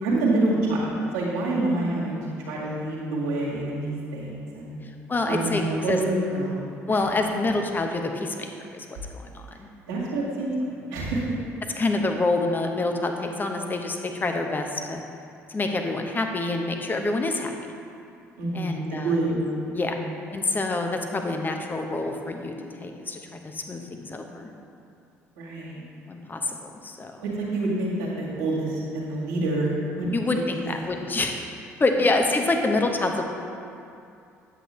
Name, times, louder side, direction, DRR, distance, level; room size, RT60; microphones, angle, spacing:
voice 1, 0.0-2.2 2.5-4.8 5.3-6.6 6.9-7.3 9.9-11.2 18.4-20.0 25.4-25.7 27.2-29.7 30.0-30.1 30.4-30.6, right 2 dB, 75° right, -6 dB, 2.0 m, -27 dB
voice 2, 5.1-6.0 6.9-8.5 8.7-9.7 11.0-11.1 11.8-15.0 15.5-17.5 18.5-19.1 19.7-20.0 20.3-22.5 22.8-24.5 26.1-27.2 30.1-31.5 31.8-33.2, left 2 dB, 25° left, 4 dB, 0.9 m, -27 dB
9.3 x 7.8 x 3.2 m, 2.5 s
figure-of-eight pair, 50°, 8 cm